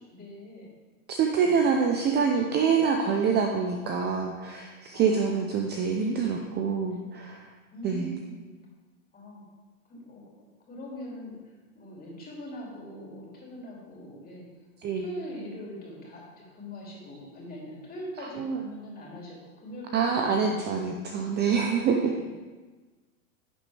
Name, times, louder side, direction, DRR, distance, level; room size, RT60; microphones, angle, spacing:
voice 1, 0.1-0.7 1.3-1.5 3.0-3.3 4.9-5.4 5.7-6.1 6.9-7.2 7.7-8.5 9.1-9.5 9.9-10.2 10.7-14.5 15.0-20.9 21.2-21.3 21.7-22.3, equal, 20° left, -3 dB, 2.8 m, -42 dB
voice 2, 1.1-7.4 7.8-8.1 14.8-15.0 18.4-18.6 19.9-22.1, right 6 dB, 25° right, 3 dB, 0.6 m, -26 dB
10.5 x 6.5 x 3.4 m, 1.3 s
hypercardioid pair, 120°, 44 cm